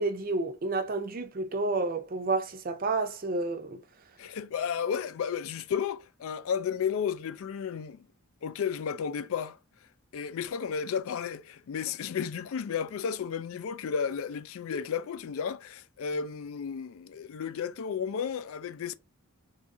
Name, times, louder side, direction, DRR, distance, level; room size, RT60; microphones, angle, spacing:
voice 1, 0.0-3.8, right 3 dB, 40° right, 0.5 m, -30 dB
voice 2, 4.2-8.0 8.4-9.6 10.1-18.9, left 7 dB, 65° left, 0.3 m, -33 dB
2.7 x 2.5 x 3.6 m
head